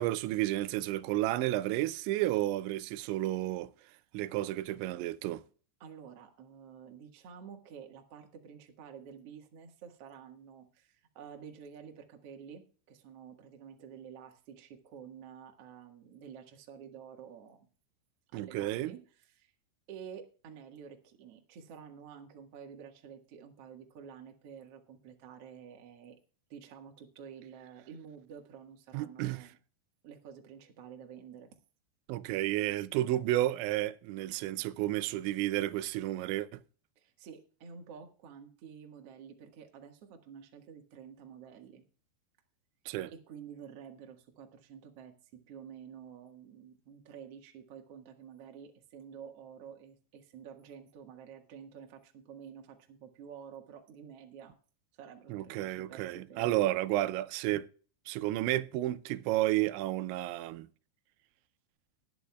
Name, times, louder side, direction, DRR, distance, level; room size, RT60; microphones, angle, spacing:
voice 1, 0.0-3.7 4.1-5.4 18.3-18.9 28.9-29.5 32.1-36.5 42.9-43.1 55.3-57.7 58.1-60.7, right 15 dB, 85° right, 2.9 m, -31 dB
voice 2, 5.8-17.7 18.3-19.5 19.9-26.2 26.5-29.6 30.0-31.5 36.9-41.8 43.1-54.6 55.0-56.7, right 7 dB, 60° right, 1.6 m, -50 dB
19.0 x 10.0 x 2.3 m
omnidirectional pair, 5.2 m